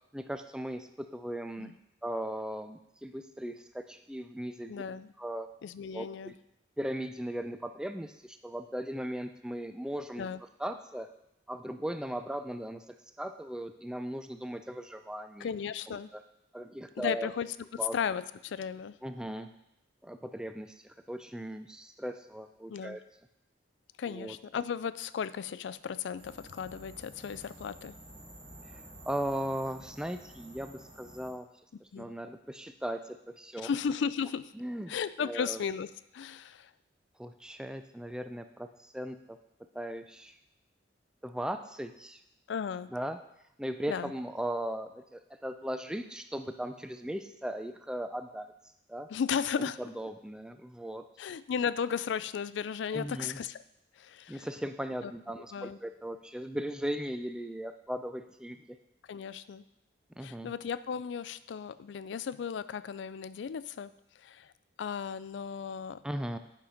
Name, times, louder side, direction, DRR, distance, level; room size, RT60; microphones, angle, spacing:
voice 1, 0.1-1.7 2.0-4.7 5.2-5.5 5.9-6.4 6.8-10.3 10.6-11.1 11.5-12.8 13.2-15.5 15.9-16.2 16.5-17.3 17.7-18.0 19.0-19.5 20.0-23.0 24.1-24.4 28.7-31.5 31.8-33.7 34.5-34.9 35.2-35.6 37.2-39.4 39.7-40.4 41.2-42.2 42.9-43.2 43.6-48.5 48.9-49.1 49.6-51.0 52.9-53.4 54.3-58.8 60.2-60.5 66.0-66.4, right 1 dB, 5° right, 8 dB, 0.3 m, -38 dB
voice 2, 4.7-5.1 5.6-6.3 10.2-10.4 15.4-16.1 17.0-17.5 17.9-19.0 22.7-23.0 24.0-27.9 31.9-32.1 33.6-34.5 34.9-35.9 36.1-36.7 42.5-42.9 43.9-44.1 49.1-49.8 51.2-53.6 54.0-54.5 55.0-55.1 55.5-55.8 59.1-59.6 60.2-63.9 64.2-64.5 64.8-66.0, left 7 dB, 70° left, 16 dB, 0.3 m, -35 dB
sound 1, 26.2-31.3, right 1 dB, 30° right, 2.0 m, -51 dB
8.4 x 5.8 x 5.1 m, 0.81 s
head